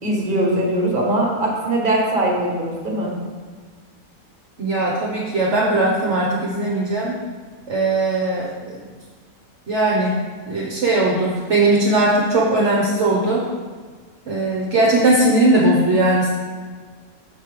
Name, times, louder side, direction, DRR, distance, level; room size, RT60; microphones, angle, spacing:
voice 1, 0.0-3.1, right 1 dB, 35° right, -2 dB, 1.8 m, -21 dB
voice 2, 4.6-7.1 7.7-8.7 9.7-10.1 10.5-13.4 14.2-16.3, right 2 dB, 55° right, -4 dB, 1.3 m, -19 dB
7.2 x 5.5 x 5.0 m, 1.5 s
omnidirectional pair, 1.5 m